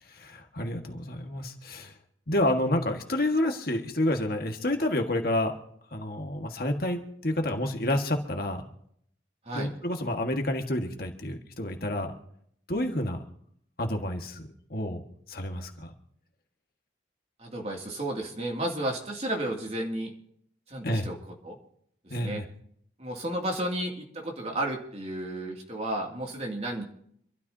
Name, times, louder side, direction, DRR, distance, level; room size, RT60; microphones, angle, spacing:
voice 1, 0.0-2.0 2.3-5.5 5.9-8.6 9.5-12.1 12.7-13.2 13.8-15.0 15.3-15.9 20.8-21.1 22.1-22.5, left 1 dB, 50° left, 4 dB, 1.6 m, -29 dB
voice 2, 17.4-20.1 20.7-21.2 21.4-21.6 22.0-22.4 23.0-26.8, right 1 dB, 35° right, 1 dB, 2.5 m, -32 dB
26.5 x 13.0 x 2.8 m, 0.68 s
head